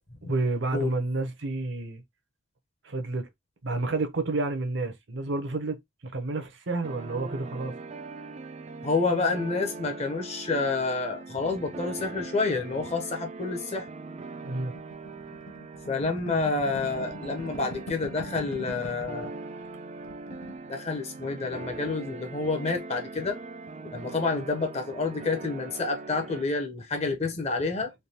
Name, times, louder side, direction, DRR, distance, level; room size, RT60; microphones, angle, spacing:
voice 1, 0.2-2.0 2.8-3.3 3.6-7.7 14.4-14.7, right 2 dB, 55° right, 0.7 m, -30 dB
sound 1, 6.8-26.4, right 3 dB, 30° right, 0.3 m, -41 dB
voice 2, 8.8-13.9 15.9-19.3 20.7-23.4 23.9-27.9, left 3 dB, 30° left, 0.6 m, -29 dB
sound 2, 14.7-19.3 19.6-19.7 20.0-20.6, left 2 dB, 70° left, 0.7 m, -43 dB
3.3 x 2.3 x 2.7 m
head